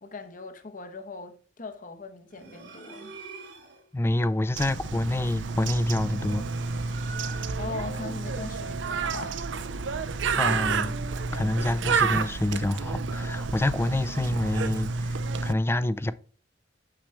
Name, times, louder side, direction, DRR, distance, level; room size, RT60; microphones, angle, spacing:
voice 1, 0.0-3.1 7.5-9.5 9.9-10.2, left 4 dB, 45° left, 0.9 m, -40 dB
sound 1, 2.3-3.9 5.8-7.8, right 4 dB, 65° right, 1.5 m, -45 dB
voice 2, 3.9-6.5 7.2-7.6 10.4-15.2 15.4-16.1, left 1 dB, 15° left, 0.3 m, -27 dB
Bird, 4.6-15.5, right 5 dB, 85° right, 0.5 m, -30 dB
6.4 x 6.0 x 3.3 m
head